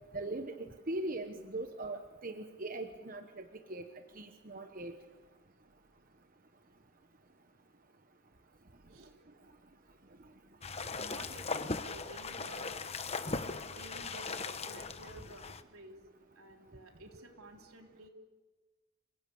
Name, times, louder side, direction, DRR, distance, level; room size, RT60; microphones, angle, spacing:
voice 1, 0.1-3.8 4.2-4.9, right 2 dB, 40° right, 6 dB, 1.1 m, -40 dB
sound 1, 10.6-15.6, left 4 dB, 30° left, 1.0 m, -39 dB
voice 2, 11.0-12.8 13.7-15.5 15.7-16.0 16.4-18.1, right 1 dB, 75° right, 3 dB, 3.7 m, -52 dB
27.5 x 19.0 x 8.6 m, 1.3 s
head